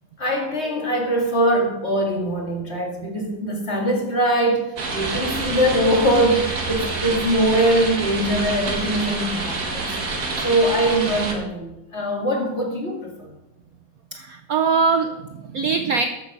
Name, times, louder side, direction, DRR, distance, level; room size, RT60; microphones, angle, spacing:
voice 1, 0.2-10.0 10.4-13.3, right 1 dB, 30° left, 1 dB, 2.0 m, -22 dB
sound 1, 4.8-11.3, right 3 dB, 40° right, 1.9 m, -27 dB
voice 2, 14.1-16.1, right 5 dB, 80° right, 7 dB, 0.8 m, -22 dB
13.0 x 7.1 x 5.3 m, 0.97 s
omnidirectional pair, 2.4 m